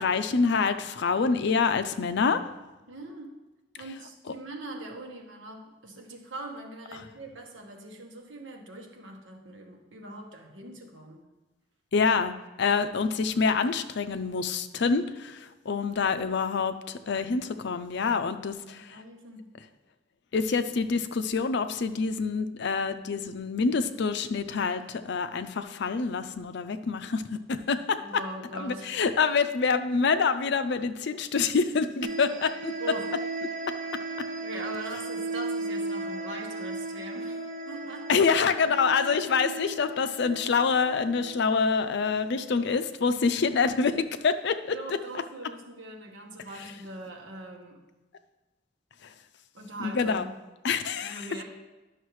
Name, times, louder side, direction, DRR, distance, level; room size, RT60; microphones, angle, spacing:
voice 1, 0.0-2.4 11.9-19.0 20.3-27.2 27.5-28.0 28.5-32.7 38.1-45.0 49.8-50.2 50.6-51.2, left 5 dB, 65° left, 11 dB, 0.5 m, -26 dB
voice 2, 2.9-3.3 3.8-11.3 18.7-19.5 28.0-28.9 32.8-33.1 34.4-38.3 44.7-47.8 49.5-50.3 51.0-51.4, right 2 dB, 80° right, 2 dB, 1.2 m, -41 dB
sound 1, 32.0-42.5, right 2 dB, 45° right, 0.7 m, -36 dB
11.0 x 6.4 x 3.1 m, 1.1 s
head